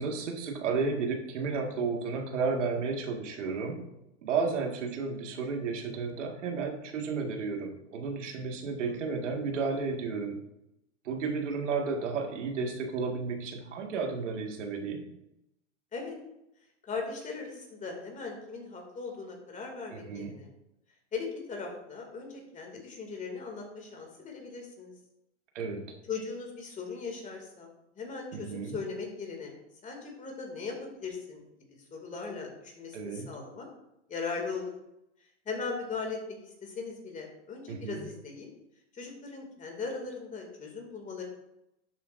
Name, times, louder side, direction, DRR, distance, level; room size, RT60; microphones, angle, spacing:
voice 1, 0.0-3.8 4.2-10.4 11.0-15.0 19.9-20.3 25.5-25.9 28.3-28.8 32.9-33.3 37.7-38.0, right 4 dB, 75° right, 2 dB, 2.0 m, -32 dB
voice 2, 16.8-20.5 21.1-24.9 26.1-29.5 29.8-31.4 31.9-33.7 34.1-34.7 35.4-38.5 38.9-41.2, left 4 dB, 20° left, 1 dB, 2.5 m, -39 dB
11.5 x 7.7 x 2.6 m, 0.85 s
hypercardioid pair, 120°, 36 cm